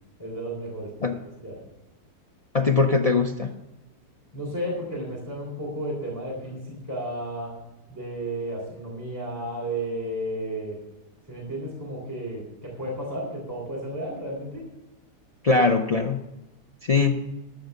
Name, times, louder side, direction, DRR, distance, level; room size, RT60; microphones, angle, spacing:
voice 1, 0.2-1.1 1.4-1.6 4.3-7.6 7.9-10.8 11.3-14.6, right 1 dB, 10° right, -3 dB, 3.2 m, -33 dB
voice 2, 2.5-3.5 15.4-16.2 16.8-17.2, left 4 dB, 60° left, 5 dB, 0.4 m, -21 dB
14.0 x 5.9 x 6.6 m, 0.99 s
omnidirectional pair, 1.7 m